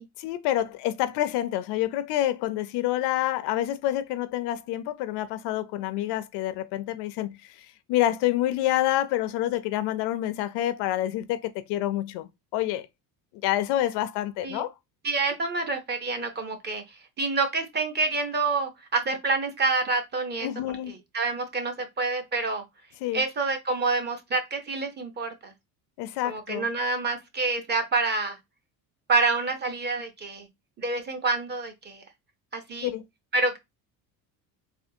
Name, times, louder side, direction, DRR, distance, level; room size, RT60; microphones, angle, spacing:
voice 1, 0.2-12.9 13.4-14.7 20.4-20.9 23.0-23.2 26.0-26.7 32.8-33.0, left 13 dB, 85° left, 0.5 m, -28 dB
voice 2, 15.0-16.8 17.2-20.5 20.9-22.6 23.1-25.5 26.2-28.4 29.1-30.5 30.8-32.0 32.5-32.9 33.3-33.6, right 3 dB, 25° right, 0.6 m, -27 dB
3.4 x 2.3 x 2.7 m
cardioid pair, 145°, 39 cm